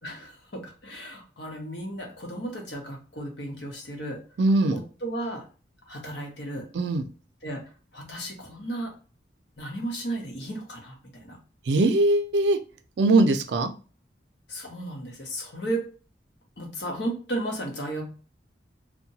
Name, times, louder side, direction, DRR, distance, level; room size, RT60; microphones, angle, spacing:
voice 1, 0.0-4.2 4.7-5.4 5.9-6.7 7.4-7.6 7.9-8.9 9.6-11.4 14.5-15.8 16.6-18.1, right 1 dB, 70° left, 1 dB, 0.9 m, -34 dB
voice 2, 4.4-4.8 6.7-7.0 11.7-12.6 13.0-13.7, right 2 dB, 70° right, 8 dB, 0.4 m, -21 dB
2.8 x 2.2 x 2.7 m, 0.37 s
head